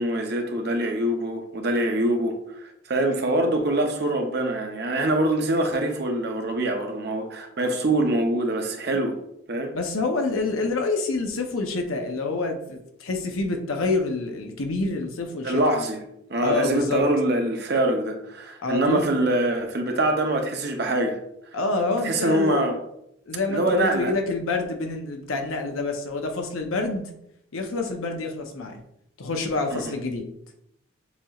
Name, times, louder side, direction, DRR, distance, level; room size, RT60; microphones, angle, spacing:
voice 1, 0.0-9.2 9.5-9.7 15.4-16.0 16.3-21.2 22.0-22.8 23.5-24.1 29.7-29.9, right 1 dB, 50° right, 3 dB, 0.7 m, -24 dB
voice 2, 9.7-15.6 16.4-17.0 18.6-19.0 21.5-22.6 23.3-27.1 27.5-28.8 29.2-30.3, left 3 dB, 85° left, 4 dB, 0.7 m, -27 dB
7.1 x 2.9 x 2.4 m, 0.77 s
head